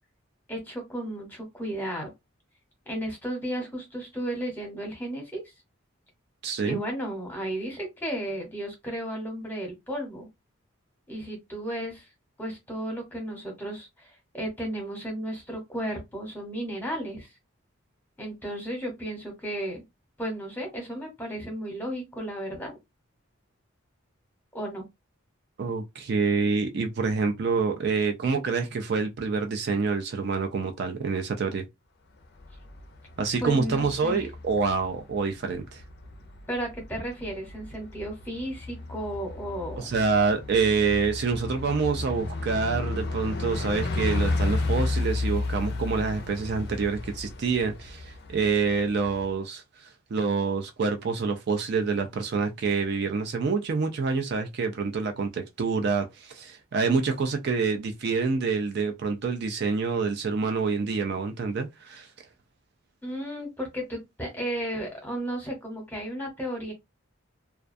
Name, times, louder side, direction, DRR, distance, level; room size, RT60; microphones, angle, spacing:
voice 1, 0.5-2.1 2.9-5.5 6.6-10.3 11.1-12.1 12.4-17.3 18.2-19.8 20.2-22.7 24.5-24.8 33.4-34.2 36.5-39.9 63.0-66.7, right 1 dB, 10° left, 0.9 m, -34 dB
voice 2, 6.4-6.8 25.6-31.6 33.2-35.8 39.8-62.1, right 4 dB, 50° right, 0.4 m, -27 dB
Bus, 32.2-49.3, left 2 dB, 50° left, 0.4 m, -33 dB
2.3 x 2.2 x 2.5 m
head